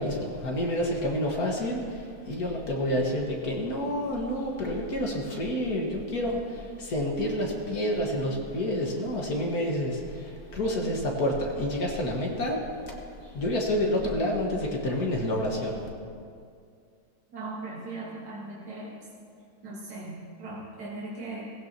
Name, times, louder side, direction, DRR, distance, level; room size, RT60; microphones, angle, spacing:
voice 1, 0.0-13.0 13.3-15.9, left 1 dB, 65° left, -1 dB, 2.2 m, -29 dB
voice 2, 17.3-18.9 19.6-21.5, right 2 dB, 80° right, -6 dB, 2.2 m, -38 dB
17.0 x 15.5 x 2.9 m, 2.3 s
omnidirectional pair, 1.7 m